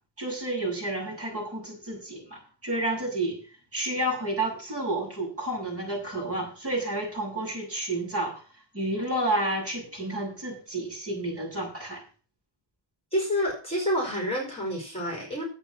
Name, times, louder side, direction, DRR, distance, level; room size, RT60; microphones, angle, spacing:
voice 1, 0.2-3.4 3.7-8.4 8.7-12.0, right 1 dB, 30° right, -3 dB, 6.8 m, -30 dB
voice 2, 13.1-15.4, equal, 15° left, -1 dB, 4.4 m, -28 dB
11.0 x 8.1 x 5.9 m, 0.38 s
wide cardioid pair, 180°, 44 cm